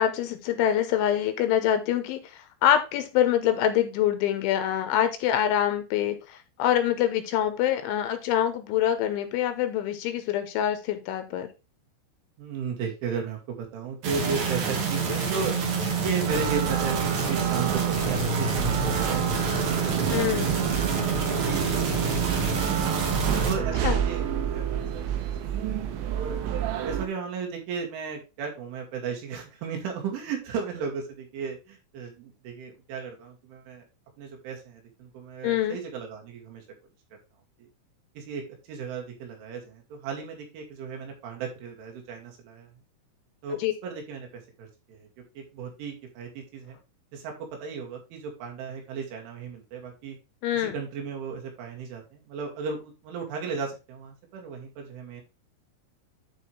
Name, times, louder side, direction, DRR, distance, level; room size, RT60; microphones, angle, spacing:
voice 1, 0.0-11.5 20.1-20.6 23.8-24.0 35.4-35.8 43.6-43.7 50.4-50.8, left 11 dB, 75° left, 9 dB, 3.2 m, -25 dB
voice 2, 12.4-15.6 16.0-22.8 23.4-26.4 26.8-33.9 34.2-36.6 37.6-37.7 38.2-42.7 43.4-45.1 45.4-46.8 47.1-47.3 47.6-50.2 50.5-55.2, right 5 dB, 70° right, 1 dB, 4.7 m, -35 dB
sound 1, 14.0-23.5, right 5 dB, 55° right, 2.2 m, -27 dB
sound 2, 16.3-27.1, right 9 dB, 85° right, 3.5 m, -30 dB
sound 3, 17.2-23.3, right 2 dB, 20° right, 2.5 m, -45 dB
11.0 x 4.9 x 3.4 m, 0.28 s
omnidirectional pair, 5.8 m